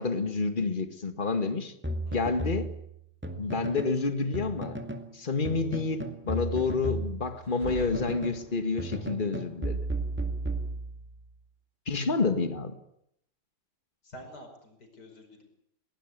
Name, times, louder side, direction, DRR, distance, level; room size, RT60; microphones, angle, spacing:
voice 1, 0.0-1.7 2.1-2.7 3.4-4.8 5.1-9.8 11.9-12.7, left 4 dB, 25° left, 1.8 m, -29 dB
sound 1, 1.8-4.0 4.3-5.1 5.4-8.4 8.8-11.2, right 1 dB, 5° right, 1.9 m, -35 dB
voice 2, 2.1-2.4 14.0-15.4, equal, 50° left, 5.6 m, -48 dB
sound 2, 7.4-9.0, right 2 dB, 20° right, 3.6 m, -44 dB
20.5 x 19.0 x 9.5 m
omnidirectional pair, 2.3 m